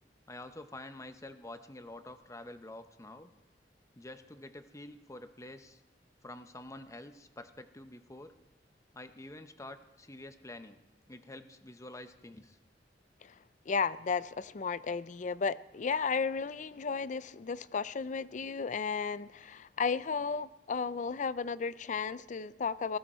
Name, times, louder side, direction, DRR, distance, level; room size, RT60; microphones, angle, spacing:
voice 1, 0.3-3.3 4.0-5.8 6.2-8.3 8.9-12.6, left 1 dB, 20° left, 9 dB, 0.8 m, -48 dB
voice 2, 13.7-23.0, left 5 dB, 45° left, 17 dB, 0.4 m, -34 dB
19.0 x 15.0 x 4.3 m, 1.0 s
head